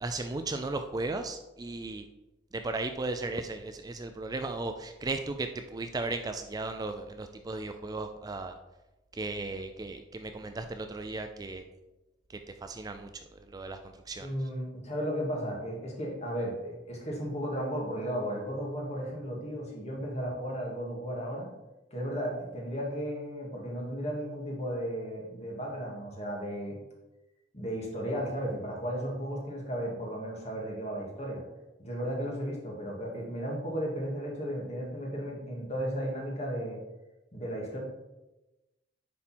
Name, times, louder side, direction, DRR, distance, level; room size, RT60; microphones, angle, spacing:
voice 1, 0.0-2.1 2.5-8.5 9.1-11.6 12.6-13.1 13.5-13.8 14.1-14.3, right 3 dB, 20° right, 7 dB, 0.4 m, -35 dB
voice 2, 14.2-21.5 21.9-26.8 27.5-31.4 31.8-36.8 37.3-37.8, equal, 40° left, -2 dB, 2.1 m, -34 dB
9.9 x 4.2 x 4.3 m, 1.0 s
head